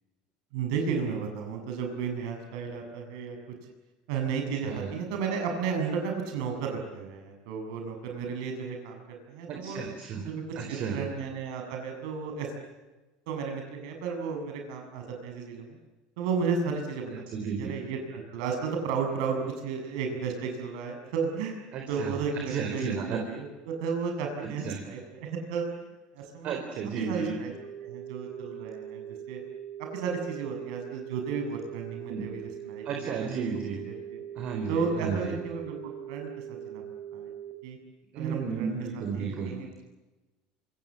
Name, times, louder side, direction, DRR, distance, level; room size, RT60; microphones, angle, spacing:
voice 1, 0.5-3.4 4.1-9.8 10.2-12.5 13.3-15.8 16.2-17.1 17.6-21.6 21.9-25.8 26.1-26.6 27.0-27.5 27.8-29.4 29.8-33.1 33.8-34.2 34.7-36.8 37.1-37.3 37.6-37.8 38.2-39.8, right 5 dB, 75° right, 3 dB, 7.2 m, -33 dB
voice 2, 9.5-10.3 10.6-11.0 17.1-17.7 21.7-22.1 22.4-23.2 24.4-24.8 26.4-27.4 32.1-32.2 32.8-33.8 34.4-35.4 38.1-39.5, right 6 dB, 40° right, 3 dB, 4.3 m, -33 dB
sound 1, 27.5-37.5, right 10 dB, ahead, 2.9 m, -41 dB
27.0 x 27.0 x 7.7 m, 1.1 s
cardioid pair, 170°, 3 cm